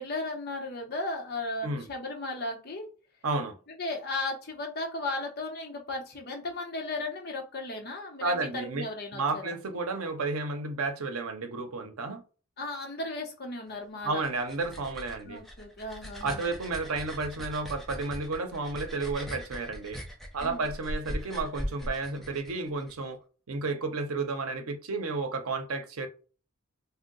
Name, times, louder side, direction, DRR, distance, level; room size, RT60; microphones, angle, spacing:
voice 1, 0.0-2.9 3.8-9.5 12.6-14.2 15.3-16.5 20.4-20.7, left 2 dB, 45° left, 0.8 m, -35 dB
voice 2, 3.2-3.6 8.2-8.9 9.1-12.2 14.0-15.4 16.2-20.0 20.3-23.2 23.5-26.1, right 3 dB, 85° right, 0.6 m, -32 dB
sound 1, 14.0-22.9, equal, ahead, 0.5 m, -40 dB
2.7 x 2.1 x 3.8 m
head